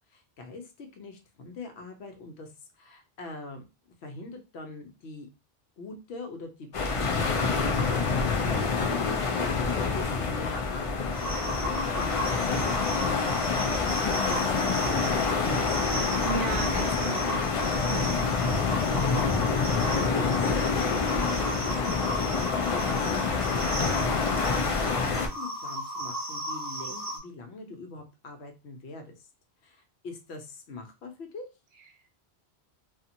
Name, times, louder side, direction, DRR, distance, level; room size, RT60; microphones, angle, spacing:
voice 1, 0.0-2.5 2.8-3.6 4.0-5.3 5.8-16.2 19.9-22.0 22.7-23.4 24.5-29.2 29.6-31.5, left 3 dB, 75° left, 5 dB, 0.9 m, -43 dB
sound 1, 6.7-25.3, left 4 dB, 55° left, 0.3 m, -27 dB
sound 2, 11.1-27.2, equal, 20° right, 0.7 m, -35 dB
voice 2, 16.2-17.4 17.7-18.2, right 4 dB, 65° right, 3 dB, 0.8 m, -35 dB
2.7 x 2.4 x 2.5 m, 0.28 s
omnidirectional pair, 1.1 m